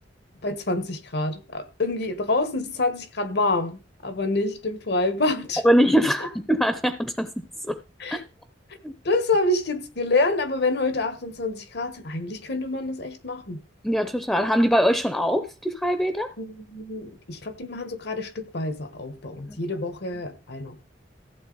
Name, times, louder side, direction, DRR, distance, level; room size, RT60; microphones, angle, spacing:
voice 1, 0.4-5.6 8.0-8.2 9.0-13.6 16.4-20.8, left 2 dB, 65° left, 1.4 m, -27 dB
voice 2, 5.6-7.8 8.1-8.2 8.8-8.9 13.8-16.3 19.5-19.6, equal, 5° left, 0.7 m, -22 dB
14.5 x 7.9 x 4.0 m
head